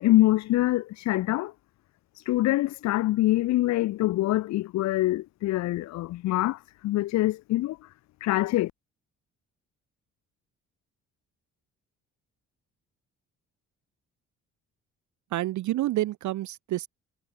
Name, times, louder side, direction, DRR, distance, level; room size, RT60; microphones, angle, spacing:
voice 1, 0.0-1.5 2.2-7.9 8.2-8.7, left 16 dB, 65° left, 0.5 m, -25 dB
voice 2, 15.3-16.9, right 15 dB, 70° right, 0.7 m, -28 dB
cardioid pair, 90°, 30 cm